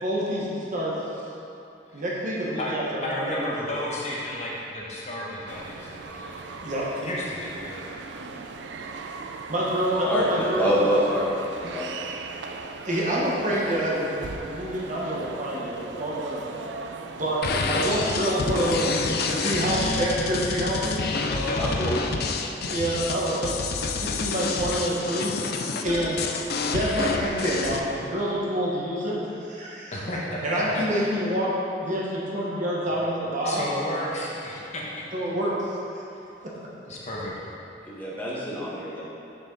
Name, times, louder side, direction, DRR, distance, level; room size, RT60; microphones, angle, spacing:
voice 1, 0.0-0.9 1.9-3.8 6.6-6.8 8.2-8.3 9.5-11.1 12.8-14.1 14.5-16.4 17.1-17.4 17.7-18.9 19.4-21.0 21.9-22.0 22.7-23.5 23.9-26.2 26.7-29.2 29.5-29.9 30.4-31.5 31.8-33.6 35.1-35.8, right 1 dB, 45° right, -6 dB, 1.4 m, -27 dB
voice 2, 3.0-6.4 7.0-7.8 21.3-21.9 29.9-30.4 30.7-30.8 33.4-34.8 36.8-37.4, left 1 dB, 40° left, -5 dB, 1.1 m, -32 dB
sound 1, 5.5-20.3, right 4 dB, 75° right, 0.5 m, -39 dB
voice 3, 10.0-11.2 11.6-11.9 17.8-18.0 21.6-21.9 37.9-39.0, equal, 10° left, -8 dB, 1.6 m, -26 dB
sound 2, 17.4-27.8, left 4 dB, 60° left, 0.5 m, -28 dB
7.2 x 7.0 x 4.0 m, 2.7 s
head